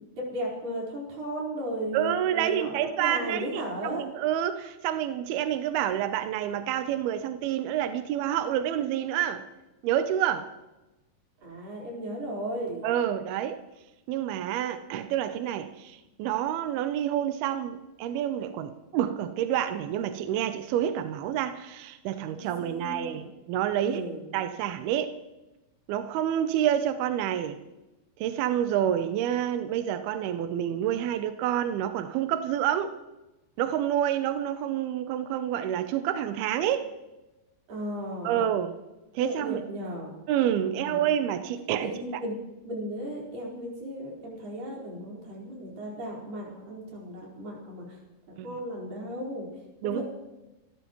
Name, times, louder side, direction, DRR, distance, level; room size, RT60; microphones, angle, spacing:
voice 1, 0.0-4.1 11.4-12.8 22.3-23.3 23.8-24.2 37.7-38.4 39.2-40.1 40.6-41.1 41.8-42.4 42.7-48.0 48.3-49.5 49.8-50.0, right 1 dB, 50° right, -3 dB, 5.9 m, -35 dB
voice 2, 1.9-9.4 9.8-10.5 12.8-13.6 14.1-24.0 24.3-25.1 25.9-27.6 28.2-32.9 33.6-36.9 38.2-38.7 39.1-39.6 40.3-42.2 48.4-48.5 49.8-50.0, right 10 dB, 80° right, 9 dB, 2.2 m, -28 dB
27.0 x 13.5 x 3.1 m, 1.0 s
omnidirectional pair, 5.2 m